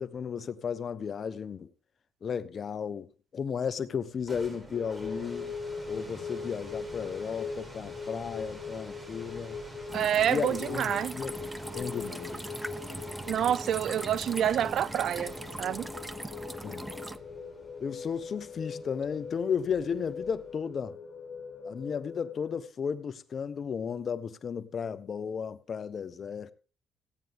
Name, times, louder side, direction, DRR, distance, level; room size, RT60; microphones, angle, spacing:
voice 1, 0.0-1.7 2.2-5.5 5.9-9.6 10.3-11.3 11.7-12.4 16.6-17.0 17.8-21.0 21.6-26.5, left 7 dB, 50° left, 0.9 m, -34 dB
sound 1, 4.0-20.7, right 1 dB, 25° right, 4.2 m, -49 dB
sound 2, 4.7-22.6, left 5 dB, 70° left, 1.9 m, -41 dB
sound 3, 9.9-17.2, right 1 dB, 10° right, 0.7 m, -40 dB
voice 2, 9.9-11.1 13.3-15.9, right 10 dB, 70° right, 0.5 m, -28 dB
16.0 x 9.3 x 3.6 m
cardioid pair, 90°, 0 cm